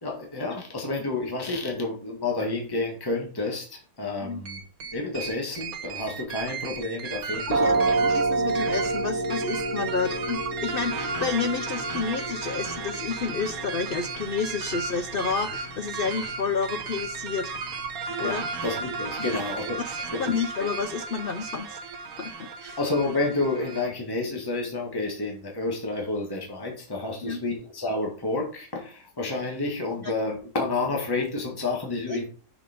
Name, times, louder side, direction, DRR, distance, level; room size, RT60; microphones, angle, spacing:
voice 1, 0.0-4.6 4.9-8.0 18.1-20.7 22.8-32.3, left 2 dB, 15° left, 1.6 m, -30 dB
sound 1, 4.5-23.9, right 5 dB, 65° right, 1.4 m, -35 dB
voice 2, 7.5-17.6 18.2-18.4 19.9-21.8 22.2-22.8 27.2-27.4 30.0-30.1 32.1-32.3, left 5 dB, 90° left, 0.5 m, -30 dB
sound 2, 7.5-19.0, right 3 dB, 85° right, 1.7 m, -31 dB
6.2 x 5.2 x 5.0 m
omnidirectional pair, 1.7 m